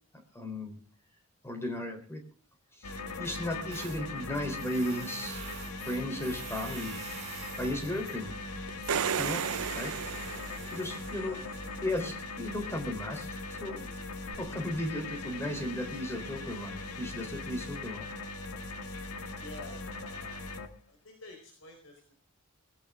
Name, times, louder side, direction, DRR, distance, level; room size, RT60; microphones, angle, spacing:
voice 1, 0.3-0.8 1.4-2.2 2.8-5.4 5.8-7.0 7.6-8.4 9.2-9.5 9.7-9.9 10.7-11.4 11.8-13.9 14.4-18.1 19.3-19.4, left 1 dB, 10° left, 4 dB, 3.9 m, -35 dB
sound 1, 2.8-20.7, left 3 dB, 90° left, 2.1 m, -40 dB
Tools, 3.7-12.0, right 5 dB, 30° right, 5.5 m, -46 dB
sound 2, 8.7-11.2 14.3-14.4, right 7 dB, 80° right, 0.6 m, -33 dB
voice 2, 19.4-20.5 20.9-22.1, left 2 dB, 70° left, 3 dB, 4.5 m, -49 dB
20.0 x 17.0 x 3.8 m, 0.41 s
head